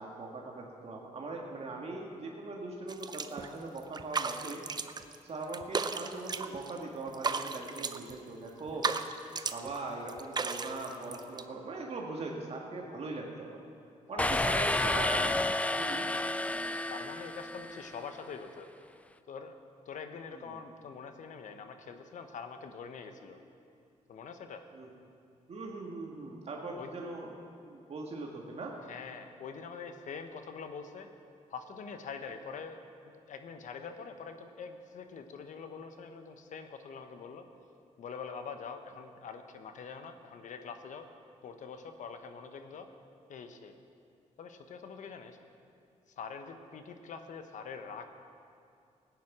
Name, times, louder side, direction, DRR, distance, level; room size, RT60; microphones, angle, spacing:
voice 1, 0.0-4.6 5.3-8.9 9.5-13.6 14.1-15.3 15.7-16.1 20.3-20.6 24.7-24.9 25.5-27.3 27.6-28.7, right 3 dB, 50° right, -1 dB, 1.6 m, -40 dB
sound 1, 2.9-3.5 3.8-5.2 5.4-6.8 7.1-8.1 8.6-9.8 10.1-11.4, right 4 dB, 30° right, 0.6 m, -35 dB
voice 2, 14.1-14.7 15.2-15.6 16.9-18.7 19.3-19.6 19.9-23.4 24.1-24.6 26.7-27.0 28.9-31.1 31.5-32.8 33.3-37.5 38.0-41.1 41.4-42.9 43.3-43.8 44.4-45.4 46.2-48.3, left 5 dB, 75° left, 7 dB, 1.0 m, -44 dB
sound 2, 14.2-18.0, left 2 dB, 10° left, 0.3 m, -31 dB
16.5 x 9.3 x 6.0 m, 2.5 s
cardioid pair, 100°, 13 cm